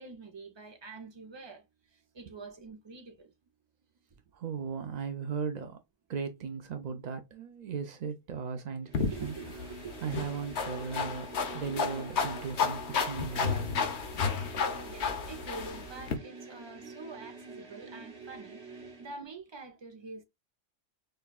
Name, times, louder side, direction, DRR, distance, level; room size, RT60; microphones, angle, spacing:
voice 1, 0.0-3.3 9.1-10.0 14.8-20.2, right 3 dB, 30° right, 0.5 m, -46 dB
voice 2, 4.3-5.8 6.1-9.3 10.0-13.7, right 6 dB, 90° right, 0.3 m, -37 dB
sound 1, 8.8-19.2, right 4 dB, 55° right, 1.3 m, -47 dB
sound 2, 8.9-16.2, left 5 dB, 65° left, 1.0 m, -32 dB
5.3 x 2.3 x 2.3 m
omnidirectional pair, 1.3 m